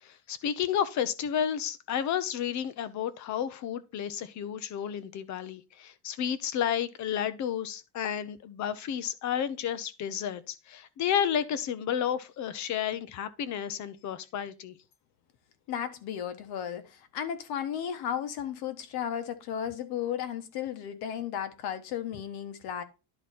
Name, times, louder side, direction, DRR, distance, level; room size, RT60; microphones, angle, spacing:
voice 1, 0.0-14.7, left 9 dB, 40° left, 0.7 m, -31 dB
voice 2, 15.7-22.8, left 9 dB, 60° left, 1.3 m, -34 dB
11.0 x 4.0 x 4.2 m
cardioid pair, 160°, 43 cm